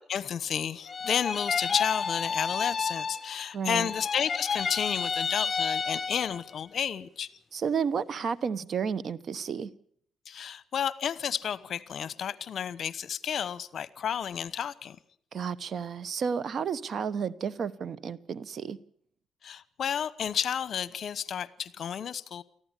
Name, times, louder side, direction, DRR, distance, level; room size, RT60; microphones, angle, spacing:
voice 1, 0.1-7.3 10.3-15.0 19.4-22.4, left 8 dB, 60° left, 1.0 m, -31 dB
sound 1, 0.9-3.5 3.8-6.5, left 5 dB, 35° left, 0.9 m, -31 dB
voice 2, 3.5-3.9 7.5-9.7 15.3-18.8, right 6 dB, 55° right, 0.9 m, -32 dB
19.0 x 14.5 x 9.8 m
cardioid pair, 90°, 0 cm